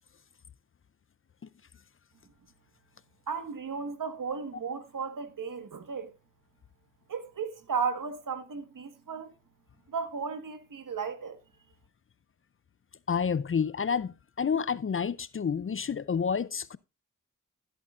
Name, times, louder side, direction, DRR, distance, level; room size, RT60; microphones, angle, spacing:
voice 1, 3.3-6.1 7.1-9.3 9.9-11.4, right 5 dB, 65° right, 1.6 m, -35 dB
voice 2, 13.1-16.8, left 6 dB, 40° left, 0.5 m, -29 dB
15.0 x 7.8 x 2.5 m
cardioid pair, 45°, 34 cm